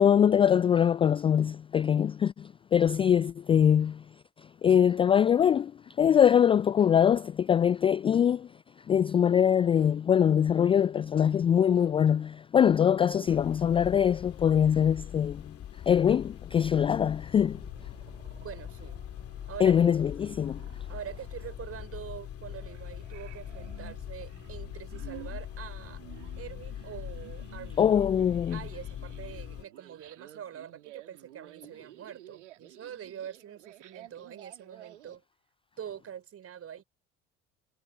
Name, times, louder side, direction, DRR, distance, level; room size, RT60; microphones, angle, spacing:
voice 1, 0.0-4.0 4.6-5.7 6.0-8.5 8.9-15.4 15.9-17.6 19.6-20.6 27.8-28.6, left 8 dB, 15° left, 0.3 m, -23 dB
sound 1, 13.3-29.6, left 10 dB, 40° left, 2.1 m, -42 dB
sound 2, 17.4-35.2, right 14 dB, 75° right, 2.6 m, -52 dB
voice 2, 18.4-19.0 19.5-19.9 20.9-26.0 26.4-27.9 28.5-35.2 35.8-36.8, right 9 dB, 40° right, 5.6 m, -44 dB
figure-of-eight pair, 60°, 36 cm